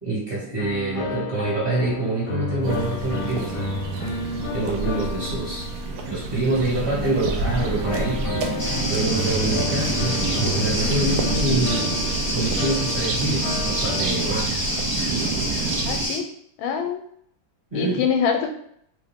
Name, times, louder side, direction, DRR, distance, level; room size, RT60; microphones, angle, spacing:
voice 1, 0.0-3.6 4.5-5.7 6.1-11.9 12.3-14.5 17.7-18.0, right 2 dB, 30° right, -7 dB, 1.7 m, -26 dB
sound 1, 0.6-6.4 7.4-14.8, left 2 dB, 70° left, 1.0 m, -31 dB
sound 2, 2.6-16.1, right 4 dB, 85° right, 0.8 m, -28 dB
sound 3, 8.6-16.2, left 1 dB, 20° left, 0.5 m, -28 dB
voice 2, 15.9-16.3 16.6-17.0 17.7-18.6, left 7 dB, 85° left, 5 dB, 1.4 m, -25 dB
3.5 x 2.7 x 3.5 m, 0.68 s
omnidirectional pair, 2.2 m